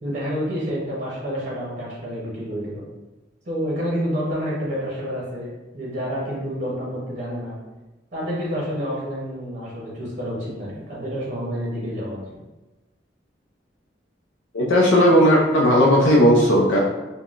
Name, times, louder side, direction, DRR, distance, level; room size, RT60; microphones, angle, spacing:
voice 1, 0.0-2.8 3.4-7.5 8.1-12.4, equal, 40° right, -5 dB, 0.8 m, -29 dB
voice 2, 14.5-16.8, equal, 90° left, -4 dB, 0.5 m, -16 dB
3.5 x 2.1 x 2.4 m, 1.1 s
head